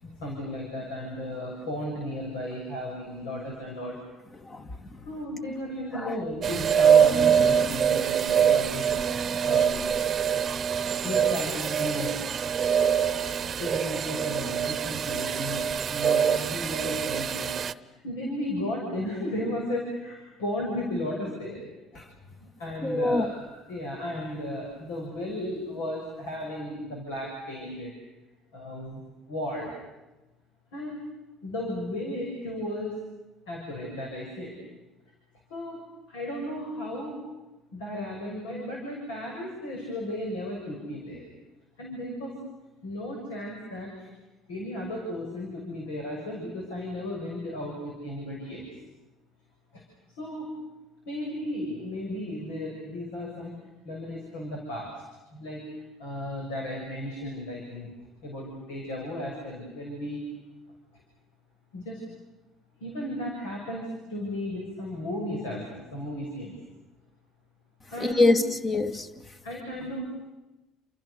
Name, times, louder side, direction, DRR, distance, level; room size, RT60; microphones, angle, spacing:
voice 1, 0.0-4.0 5.0-9.0 9.4-9.9 11.0-12.2 13.6-15.6 15.9-17.8 18.0-22.0 22.4-27.9 28.5-29.7 30.7-31.1 31.4-33.0 33.5-34.6 35.5-35.8 36.1-37.2 37.7-41.2 41.8-42.4 42.8-44.1 44.5-48.7 49.7-49.8 50.2-50.5 51.1-53.5 53.8-54.9 55.3-55.7 56.0-57.9 58.2-60.3 61.7-62.0 62.8-66.5 67.9-68.3 69.4-70.2, left 1 dB, 85° left, -1 dB, 7.0 m, -35 dB
voice 2, 4.4-5.0 5.9-6.2 22.0-22.1 22.8-23.3 68.0-69.2, left 2 dB, 35° left, 8 dB, 2.3 m, -25 dB
sound 1, 6.4-17.7, right 8 dB, 45° right, 0.9 m, -24 dB
30.0 x 28.0 x 6.8 m, 1.1 s
hypercardioid pair, 70°, 0 cm